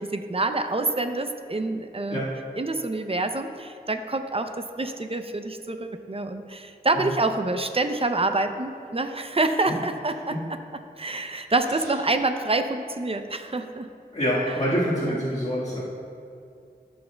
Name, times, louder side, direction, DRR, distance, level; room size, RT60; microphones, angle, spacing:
voice 1, 0.0-2.2 2.6-10.6 11.0-13.9 15.0-15.2, right 2 dB, 35° right, 7 dB, 0.6 m, -27 dB
voice 2, 14.1-15.8, equal, 40° left, -7 dB, 1.6 m, -26 dB
14.0 x 6.4 x 2.3 m, 2.4 s
wide cardioid pair, 45°, 17 cm